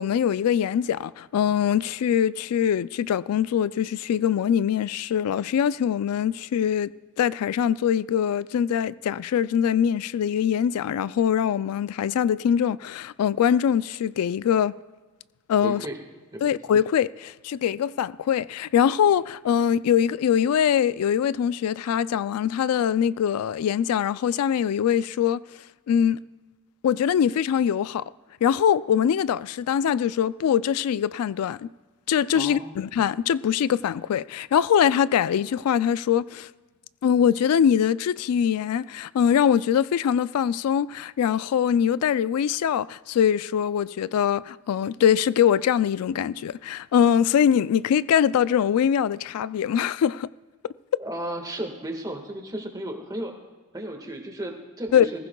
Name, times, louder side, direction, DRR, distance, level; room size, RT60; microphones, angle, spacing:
voice 1, 0.0-6.9 7.2-14.7 15.5-15.8 16.4-25.4 25.9-26.2 26.8-28.0 28.4-31.7 32.1-36.5 37.0-50.3 54.9-55.1, left 8 dB, 85° left, 0.3 m, -23 dB
voice 2, 15.6-16.0 16.3-16.6 32.3-32.8 51.0-53.3 53.7-55.3, right 1 dB, 15° right, 1.6 m, -34 dB
20.5 x 15.0 x 2.3 m
head